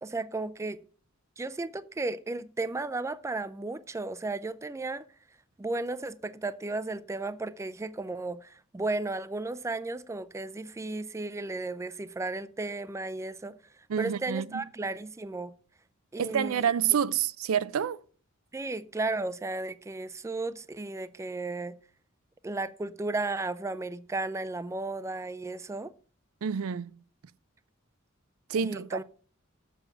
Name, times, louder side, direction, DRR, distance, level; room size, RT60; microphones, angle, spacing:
voice 1, 0.0-0.8 1.4-5.1 5.6-15.5 16.1-16.7 18.5-21.8 22.4-25.9 28.6-29.0, right 2 dB, 15° right, 0.4 m, -34 dB
voice 2, 13.9-14.6 16.2-18.0 26.4-26.9 28.5-28.9, right 8 dB, 90° right, 0.4 m, -28 dB
7.0 x 7.0 x 5.4 m
head